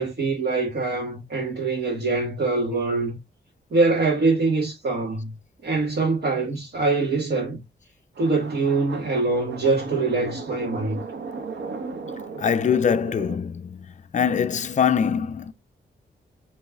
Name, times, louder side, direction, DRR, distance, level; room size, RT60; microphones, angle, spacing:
voice 1, 0.0-3.2 3.7-5.3 5.6-7.6 8.2-11.0, right 3 dB, 60° right, 1.5 m, -24 dB
sound 1, 8.1-13.4, right 4 dB, 85° right, 1.2 m, -36 dB
voice 2, 12.4-13.9 14.1-15.5, left 7 dB, 40° left, 0.5 m, -23 dB
7.2 x 3.1 x 2.3 m
wide cardioid pair, 110°, 19 cm